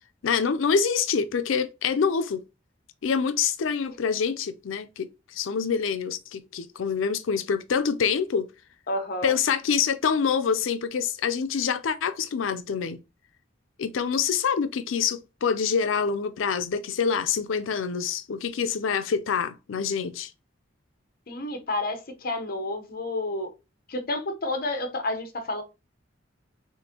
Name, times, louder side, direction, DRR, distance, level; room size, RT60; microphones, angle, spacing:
voice 1, 0.2-2.4 3.0-8.5 9.2-13.0 13.8-20.3, left 6 dB, 75° left, 0.4 m, -26 dB
voice 2, 8.9-9.3 21.3-23.5 23.9-25.6, left 2 dB, 50° left, 0.8 m, -30 dB
6.3 x 2.5 x 2.8 m
head